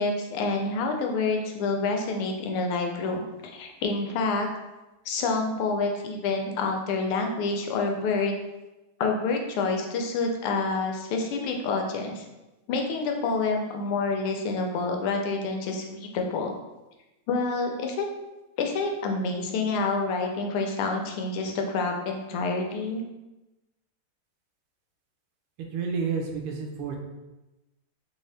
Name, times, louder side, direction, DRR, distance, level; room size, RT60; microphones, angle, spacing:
voice 1, 0.0-4.5 5.0-8.4 9.0-12.2 12.7-16.5 17.3-18.1 18.6-23.0, left 3 dB, 85° left, 3 dB, 1.5 m, -28 dB
voice 2, 25.7-27.0, right 5 dB, 80° right, 2 dB, 1.5 m, -30 dB
4.2 x 2.7 x 3.2 m, 1.0 s
omnidirectional pair, 2.4 m